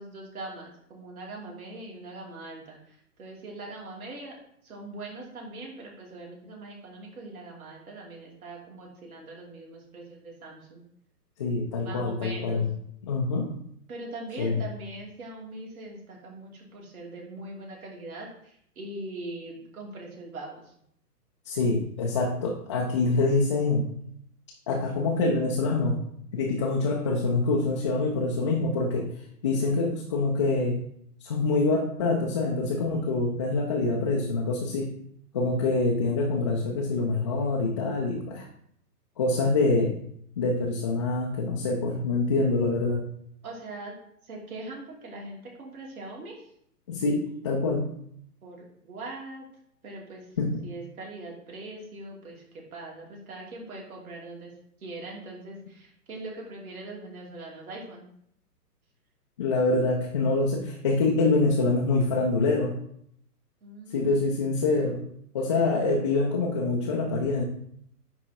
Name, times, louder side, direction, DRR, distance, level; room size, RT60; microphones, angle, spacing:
voice 1, 0.0-4.4 4.6-10.8 11.8-12.6 13.9-20.7 43.4-44.0 44.2-46.5 48.4-49.4 49.8-54.5 54.8-58.1 63.6-64.4, right 2 dB, 60° right, -2 dB, 2.8 m, -41 dB
voice 2, 11.4-12.7 13.0-13.5 14.4-14.6 21.5-23.9 24.7-26.0 26.3-29.1 29.4-30.8 31.2-34.9 35.3-38.5 39.2-39.9 40.4-43.0 46.9-47.9 50.4-50.6 59.4-62.7 63.9-65.0 65.3-67.4, left 3 dB, 20° left, -1 dB, 0.5 m, -25 dB
10.0 x 3.7 x 4.2 m, 0.70 s
figure-of-eight pair, 130°, 48 cm